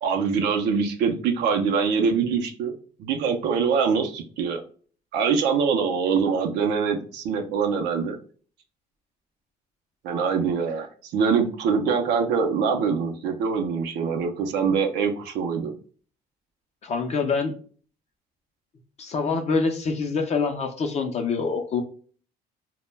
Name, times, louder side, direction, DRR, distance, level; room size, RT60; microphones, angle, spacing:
voice 1, 0.0-2.7 3.0-4.6 5.1-8.2 10.0-15.7, right 6 dB, 80° right, 4 dB, 0.5 m, -24 dB
voice 2, 16.8-17.5 19.0-21.8, left 4 dB, 40° left, 5 dB, 0.4 m, -25 dB
2.1 x 2.1 x 3.1 m, 0.42 s
cardioid pair, 110°, 17 cm